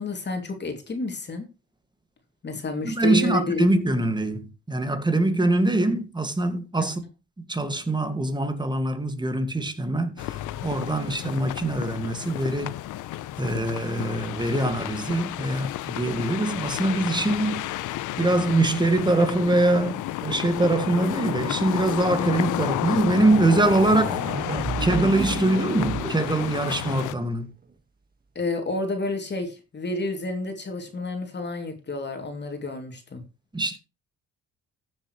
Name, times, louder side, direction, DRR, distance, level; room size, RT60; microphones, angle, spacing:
voice 1, 0.0-1.4 2.4-3.7 6.8-6.9 28.3-33.2, left 2 dB, 35° left, 2.9 m, -30 dB
voice 2, 2.8-7.0 7.5-12.7 13.4-17.6 18.2-24.2 24.8-27.5 33.5-33.8, right 2 dB, 15° right, 2.1 m, -23 dB
sound 1, 10.2-27.2, left 14 dB, 85° left, 0.8 m, -31 dB
sound 2, 23.3-23.4 23.6-27.4, right 4 dB, 30° right, 1.7 m, -32 dB
14.5 x 7.4 x 3.2 m
cardioid pair, 90°, 30 cm